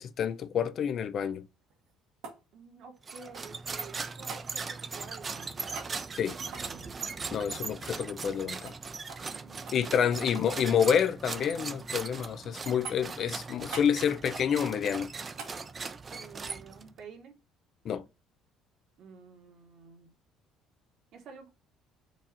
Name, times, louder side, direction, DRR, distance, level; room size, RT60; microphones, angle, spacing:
voice 1, 0.0-1.4 6.2-6.3 7.3-8.7 9.7-15.1 17.9-18.0, left 8 dB, 50° left, 0.4 m, -28 dB
sound 1, 1.6-3.7 4.3-4.5 5.7-6.0 6.4-8.4 8.7-8.8 9.1-9.3 9.7-10.6 10.8-11.5 11.9-12.4 12.8-13.2 13.7-14.0 15.4-15.6 18.0-18.1, right 5 dB, 85° right, 1.5 m, -46 dB
voice 2, 2.5-5.8 6.3-6.9 7.5-7.7 9.2-11.2 16.1-17.3 19.0-20.1 21.1-21.5, right 5 dB, 60° right, 1.3 m, -51 dB
sound 2, 3.0-17.0, right 4 dB, 30° right, 0.4 m, -39 dB
4.7 x 2.5 x 4.2 m
cardioid pair, 125°, 0 cm